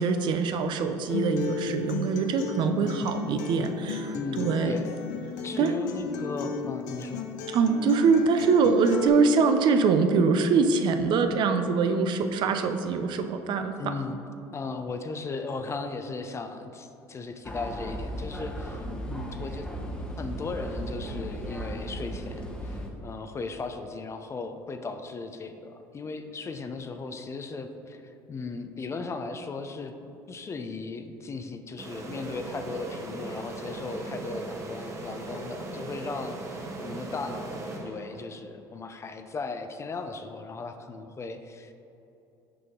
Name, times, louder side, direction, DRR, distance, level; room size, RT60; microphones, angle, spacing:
voice 1, 0.0-4.8 5.6-5.7 7.5-13.9, right 5 dB, 55° right, 7 dB, 0.5 m, -24 dB
Acoustic guitar, 1.1-9.1, left 5 dB, 80° left, 0.6 m, -34 dB
voice 2, 4.1-4.9 5.4-7.3 13.8-14.2 14.5-19.7 20.0-29.9 30.3-41.7, left 4 dB, 30° left, 7 dB, 0.6 m, -37 dB
sound 1, 17.4-22.9, equal, 10° left, 1.0 m, -36 dB
sound 2, 31.8-38.4, right 2 dB, 30° right, 1.1 m, -38 dB
6.8 x 5.2 x 3.8 m, 2.8 s
hypercardioid pair, 70°, 10 cm